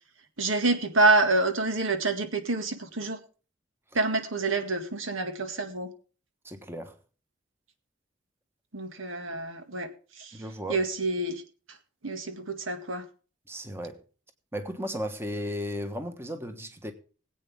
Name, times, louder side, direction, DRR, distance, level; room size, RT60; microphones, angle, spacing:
voice 1, 0.4-3.2 3.9-5.9 8.7-9.9 10.2-10.3 10.7-11.4 12.0-13.0, right 2 dB, 90° right, 1.9 m, -27 dB
voice 2, 6.4-7.0 10.3-10.8 13.5-14.0 14.5-16.9, equal, 10° right, 1.2 m, -35 dB
21.0 x 8.5 x 3.5 m
head